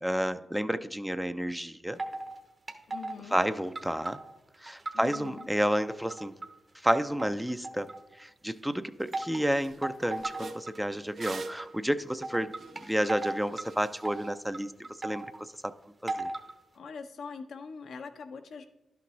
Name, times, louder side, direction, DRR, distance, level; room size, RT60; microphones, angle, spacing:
voice 1, 0.0-2.0 3.3-4.2 4.6-6.3 6.8-7.9 8.2-12.5 12.8-14.7 15.0-15.7 16.0-16.3, equal, 5° right, 11 dB, 0.4 m, -30 dB
sound 1, 2.0-2.4 2.7-3.4 3.8-5.4 5.8-6.5 6.9-8.1 9.1-9.4 9.8-10.8 11.3-11.6 12.2-13.7 14.0-15.4 16.1-16.5, right 2 dB, 45° right, 1.0 m, -37 dB
voice 2, 2.9-3.4 4.9-5.5 16.7-18.7, left 5 dB, 75° left, 6 dB, 0.7 m, -43 dB
sound 2, 8.5-8.6 9.0-9.2 9.6-14.3, right 3 dB, 70° right, 0.7 m, -45 dB
11.0 x 5.8 x 3.1 m, 0.96 s
supercardioid pair, 50°, 0 cm